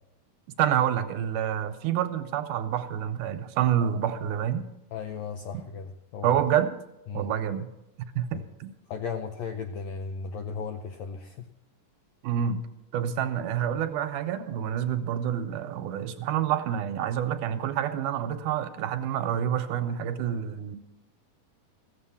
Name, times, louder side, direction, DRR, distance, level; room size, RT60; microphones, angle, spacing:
voice 1, 0.6-4.7 6.2-6.7 7.1-7.7 8.2-8.7 12.2-12.6 12.9-20.8, right 9 dB, 80° right, 8 dB, 2.1 m, -28 dB
voice 2, 4.9-6.4 7.1-7.3 8.3-8.4 8.9-11.5, left 5 dB, 80° left, 6 dB, 1.6 m, -36 dB
15.0 x 7.4 x 7.0 m, 0.89 s
omnidirectional pair, 3.9 m